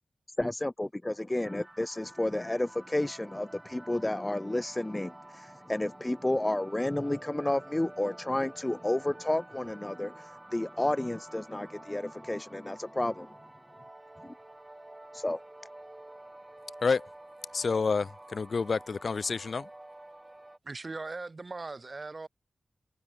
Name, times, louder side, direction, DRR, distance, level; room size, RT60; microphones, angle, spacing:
voice 1, 0.4-13.4 14.2-14.3 15.1-15.4, left 1 dB, 15° left, 0.4 m, -31 dB
sound 1, 1.4-20.6, right 1 dB, 15° right, 5.3 m, -50 dB
voice 2, 17.5-19.7, left 4 dB, 55° left, 1.5 m, -29 dB
voice 3, 20.6-22.3, right 3 dB, 35° right, 2.2 m, -39 dB
wide cardioid pair, 120°, 0 cm